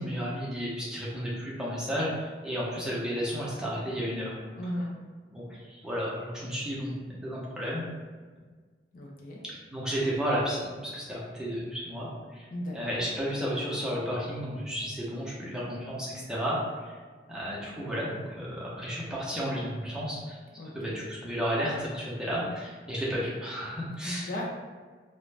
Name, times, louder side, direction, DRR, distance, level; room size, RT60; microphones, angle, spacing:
voice 1, 0.0-4.4 5.3-7.9 9.7-12.5 12.7-17.0 17.3-20.4 20.7-24.3, equal, 5° right, -7 dB, 0.6 m, -32 dB
voice 2, 4.6-4.9 8.9-9.4 12.5-13.0 20.6-21.0 24.0-24.5, equal, 50° left, -2 dB, 0.4 m, -36 dB
2.5 x 2.1 x 3.2 m, 1.5 s
head